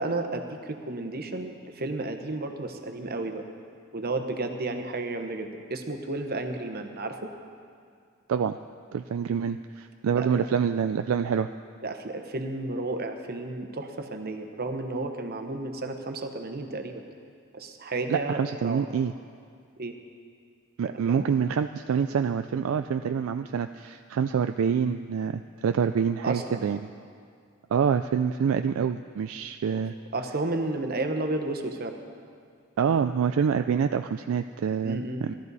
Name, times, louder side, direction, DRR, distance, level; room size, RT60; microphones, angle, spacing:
voice 1, 0.0-3.4 3.9-7.3 10.1-10.4 11.8-17.0 17.5-18.8 19.8-19.9 20.8-21.2 26.2-26.7 29.7-29.8 30.1-32.0 34.8-35.2, right 2 dB, 50° right, 5 dB, 1.1 m, -32 dB
voice 2, 8.9-11.5 18.1-19.1 20.8-26.8 27.7-29.9 32.8-35.3, right 7 dB, 70° right, 8 dB, 0.3 m, -26 dB
18.0 x 13.0 x 4.1 m, 2.2 s
head